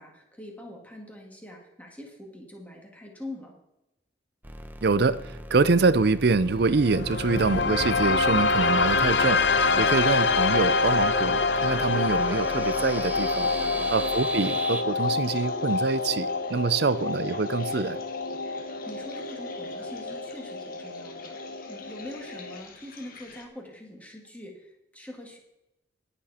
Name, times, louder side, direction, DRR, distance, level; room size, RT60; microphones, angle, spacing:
voice 1, 0.0-3.5 9.7-10.0 13.5-13.9 18.9-21.4 21.7-25.4, left 1 dB, 10° left, 0 dB, 2.3 m, -43 dB
sound 1, 4.4-14.8, right 1 dB, 10° right, 0.8 m, -38 dB
voice 2, 4.8-9.4 9.8-13.5 13.9-18.0, right 4 dB, 55° right, 16 dB, 0.5 m, -25 dB
sound 2, 6.6-22.6, left 4 dB, 65° left, 0.7 m, -26 dB
sound 3, 10.4-23.5, left 5 dB, 50° left, 1.7 m, -49 dB
18.5 x 7.2 x 4.3 m, 0.92 s
head